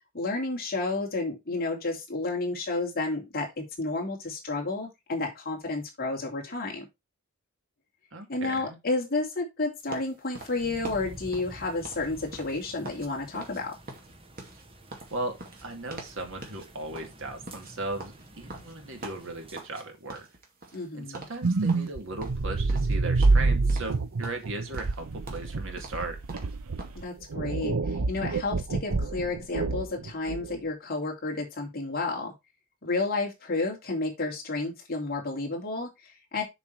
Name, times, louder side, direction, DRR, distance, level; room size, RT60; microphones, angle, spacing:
voice 1, 0.1-6.8 8.3-13.7 20.7-21.3 26.9-32.3 32.8-36.4, left 3 dB, 45° left, 0 dB, 3.2 m, -31 dB
voice 2, 8.1-8.8 15.1-20.3 20.9-26.2, right 2 dB, 60° right, 4 dB, 2.4 m, -37 dB
sound 1, 9.9-13.1 13.3-13.6 13.9-16.2 16.4-16.7 16.9-19.8 20.1-20.9 21.1-21.4 21.7-23.0 23.2-24.0 24.2-27.0, right 2 dB, 40° right, 2.5 m, -43 dB
sound 2, 10.3-19.6, right 1 dB, 25° right, 1.6 m, -49 dB
sound 3, 21.4-30.6, right 3 dB, 90° right, 0.7 m, -27 dB
7.0 x 6.3 x 4.6 m, 0.22 s
head